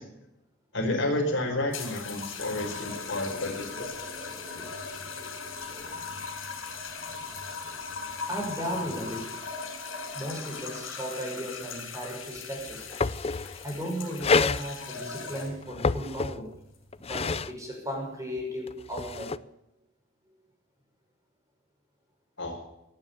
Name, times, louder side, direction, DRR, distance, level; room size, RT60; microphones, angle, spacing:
voice 1, 0.7-3.7 4.0-4.1 22.4-22.6, left 1 dB, 65° left, 2 dB, 5.0 m, -30 dB
sound 1, 1.7-15.7 16.6-16.9, left 5 dB, 80° left, 6.0 m, -39 dB
voice 2, 4.9-5.3 8.3-9.5 10.1-12.9 13.6-16.5 17.0-19.4, equal, 15° right, 0 dB, 6.1 m, -36 dB
sound 2, 12.4-12.5 12.7-13.6 14.2-14.6 15.6-16.6 16.9-17.5 18.7-19.4, left 4 dB, 30° left, 0.5 m, -28 dB
18.5 x 9.5 x 7.2 m, 0.87 s
head